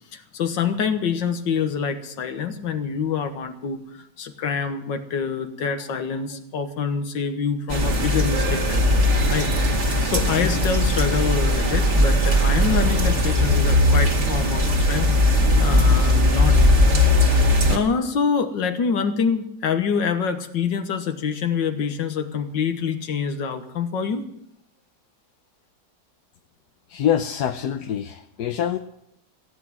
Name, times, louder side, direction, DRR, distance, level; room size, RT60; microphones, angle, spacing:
voice 1, 0.1-9.0 9.3-9.8 10.0-24.2, left 6 dB, 85° left, 8 dB, 2.0 m, -26 dB
sound 1, 7.7-17.8, left 1 dB, 40° right, 2.2 m, -19 dB
voice 2, 26.9-28.8, left 9 dB, 70° left, 7 dB, 1.2 m, -25 dB
16.0 x 8.5 x 8.9 m, 0.76 s
omnidirectional pair, 1.9 m